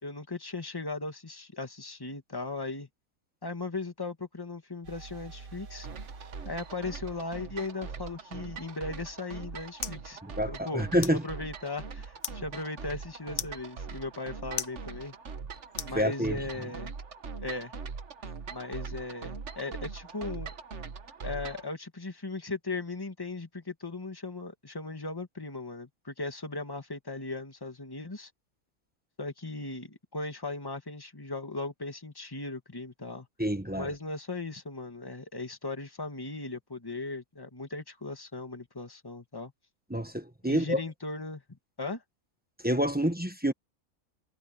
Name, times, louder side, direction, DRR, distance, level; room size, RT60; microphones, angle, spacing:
voice 1, 0.0-2.9 3.4-5.9 6.5-10.2 10.5-15.1 15.8-16.9 17.4-17.7 18.5-20.5 21.2-28.3 29.2-33.3 33.7-39.5 40.4-41.4 41.8-42.0, left 3 dB, 15° left, 2.0 m, -37 dB
sound 1, 4.8-8.6, right 4 dB, 75° right, 2.0 m, -49 dB
sound 2, 5.8-21.7, right 5 dB, 55° right, 1.6 m, -42 dB
sound 3, 9.0-16.6, left 8 dB, 50° left, 0.9 m, -43 dB
voice 2, 10.2-11.2 15.9-16.4 33.4-33.9 39.9-40.8 42.6-43.5, equal, 5° right, 1.2 m, -28 dB
omnidirectional pair, 1.5 m